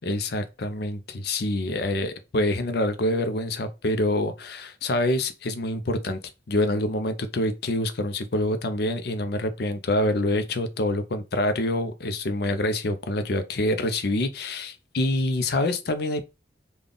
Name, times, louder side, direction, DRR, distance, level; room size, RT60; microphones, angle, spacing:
voice 1, 0.0-6.2 6.5-16.2, left 1 dB, 60° left, 0.5 m, -26 dB
3.8 x 2.3 x 3.5 m
head